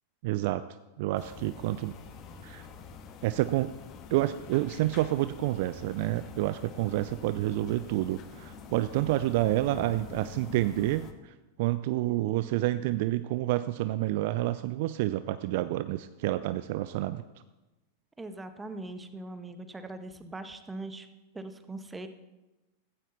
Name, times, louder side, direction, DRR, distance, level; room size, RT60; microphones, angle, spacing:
voice 1, 0.2-0.6 1.0-1.9 2.4-2.7 3.2-3.7 4.1-11.3 11.6-17.2, right 16 dB, 50° right, 13 dB, 0.5 m, -29 dB
sound 1, 1.2-11.1, left 5 dB, 35° left, 1.5 m, -46 dB
voice 2, 18.2-21.1 21.3-22.1, right 2 dB, 10° right, 9 dB, 1.3 m, -41 dB
15.5 x 15.5 x 4.1 m, 1.1 s
figure-of-eight pair, 90°, 0 cm